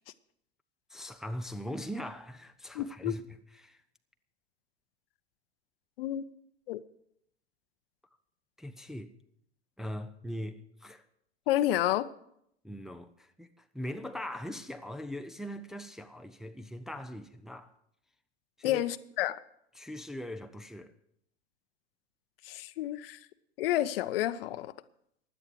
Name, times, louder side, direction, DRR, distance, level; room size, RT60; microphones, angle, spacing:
voice 1, 0.9-3.8 8.6-9.1 9.8-11.0 12.6-13.5 13.7-17.7 18.6-18.8 19.8-20.9, equal, ahead, 0.6 m, -40 dB
voice 2, 2.7-3.1 6.0-6.3 6.7-6.8 11.5-12.1 18.6-19.4 22.4-23.2 23.6-24.7, left 13 dB, 55° left, 0.7 m, -30 dB
16.0 x 11.0 x 4.8 m
figure-of-eight pair, 85°, 34 cm